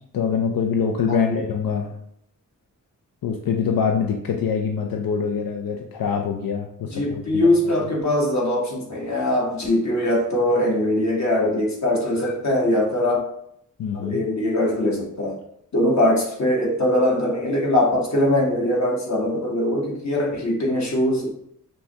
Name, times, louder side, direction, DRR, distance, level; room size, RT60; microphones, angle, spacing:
voice 1, 0.1-1.9 3.2-7.2 13.8-14.2, left 6 dB, 75° left, 2 dB, 0.5 m, -24 dB
voice 2, 6.9-13.2 13.9-15.4 15.7-21.3, left 1 dB, 50° left, -2 dB, 1.2 m, -21 dB
5.4 x 2.2 x 2.8 m, 0.71 s
wide cardioid pair, 110°, 35 cm